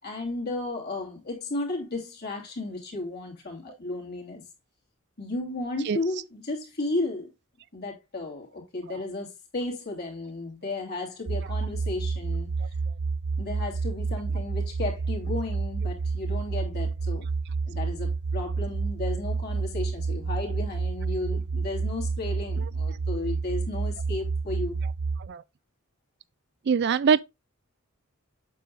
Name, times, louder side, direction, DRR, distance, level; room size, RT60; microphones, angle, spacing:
voice 1, 0.0-4.4 5.2-7.3 7.7-12.8 13.4-17.3 17.7-24.8, left 2 dB, 50° left, 2.9 m, -34 dB
sound 1, 11.3-25.3, right 4 dB, 85° right, 0.7 m, -29 dB
voice 2, 26.7-27.2, right 6 dB, 55° right, 0.4 m, -22 dB
8.3 x 6.9 x 2.5 m
head